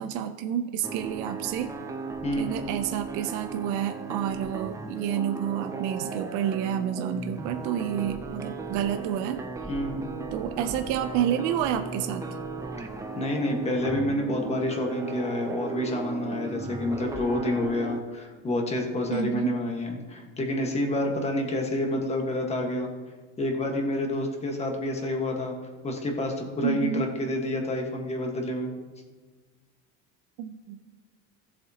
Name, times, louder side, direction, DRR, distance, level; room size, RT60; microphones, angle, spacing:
voice 1, 0.0-1.7 2.4-9.4 10.3-12.2 19.1-19.5 26.6-27.1 30.4-30.8, right 10 dB, 55° right, 7 dB, 0.6 m, -29 dB
sound 1, 0.8-18.0, right 4 dB, 10° right, 0.5 m, -36 dB
voice 2, 2.2-2.6 9.7-10.1 13.1-22.9 23.4-25.5 25.8-28.7, left 1 dB, 20° left, 2 dB, 1.5 m, -28 dB
16.5 x 7.5 x 2.9 m, 1.3 s
cardioid pair, 150°, 35 cm